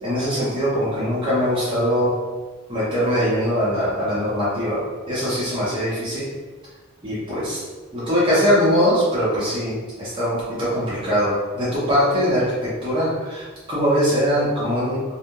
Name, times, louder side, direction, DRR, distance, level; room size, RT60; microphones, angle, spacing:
voice 1, 0.0-2.1 2.7-4.8 5.1-6.2 7.0-7.6 7.9-12.5 12.8-13.4 13.7-15.0, equal, 25° right, -10 dB, 0.6 m, -21 dB
2.8 x 2.0 x 2.2 m, 1.3 s
head